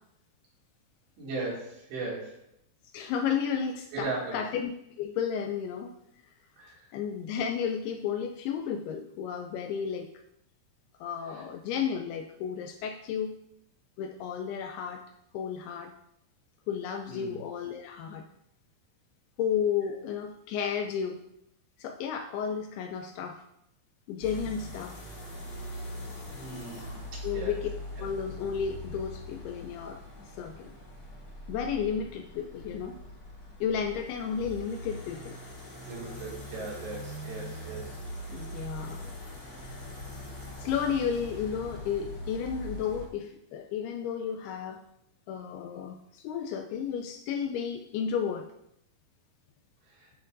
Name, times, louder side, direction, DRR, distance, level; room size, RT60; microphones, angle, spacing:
voice 1, 1.2-2.4 3.9-4.4 6.6-6.8 11.3-11.4 17.1-17.4 26.4-27.6 28.0-28.1 35.9-38.0 38.3-38.4 49.9-50.1, right 3 dB, 80° right, -5 dB, 4.6 m, -38 dB
voice 2, 2.9-4.7 5.0-5.9 6.9-10.1 11.0-13.4 14.0-15.0 15.3-15.9 16.7-18.3 19.4-21.2 21.8-23.4 24.1-24.9 27.2-27.7 28.0-30.0 30.4-30.7 31.5-33.0 33.6-35.4 38.3-39.1 40.6-44.8 45.3-48.5, left 7 dB, 85° left, 5 dB, 2.3 m, -32 dB
sound 1, 24.2-43.1, left 1 dB, 35° left, 2.9 m, -42 dB
12.5 x 6.7 x 2.6 m, 0.78 s
omnidirectional pair, 4.9 m